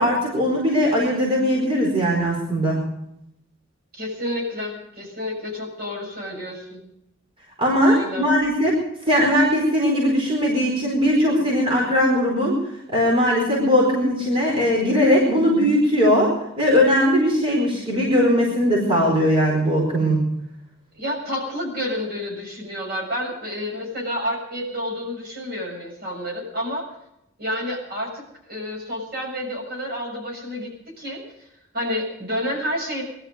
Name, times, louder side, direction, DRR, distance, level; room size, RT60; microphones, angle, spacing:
voice 1, 0.0-2.8 7.6-12.5 12.9-20.2, equal, 30° right, -3 dB, 4.6 m, -19 dB
voice 2, 3.9-6.8 7.8-8.3 20.9-26.9 27.4-28.2 28.5-31.5 31.7-33.0, left 1 dB, 50° right, 0 dB, 6.9 m, -29 dB
21.5 x 12.5 x 5.3 m, 0.80 s
head